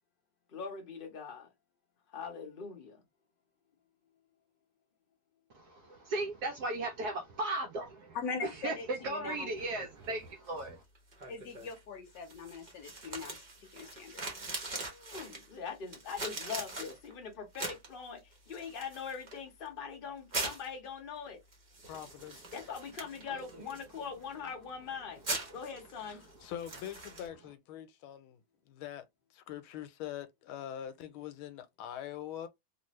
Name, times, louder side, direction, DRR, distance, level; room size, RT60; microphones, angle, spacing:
voice 1, 0.5-1.5 2.1-3.0 14.8-21.4 22.5-25.2 25.5-26.3, left 6 dB, 45° left, 0.7 m, -42 dB
voice 2, 5.5-8.2 8.4-10.8 23.3-23.6, right 2 dB, 70° right, 0.9 m, -37 dB
voice 3, 8.1-9.5 11.3-13.4 13.7-14.3, left 4 dB, 70° left, 1.2 m, -41 dB
sound 1, 9.3-27.3, right 2 dB, 40° right, 0.6 m, -44 dB
voice 4, 21.9-22.4 26.0-32.5, left 10 dB, 85° left, 1.5 m, -44 dB
3.3 x 2.5 x 3.0 m
omnidirectional pair, 2.3 m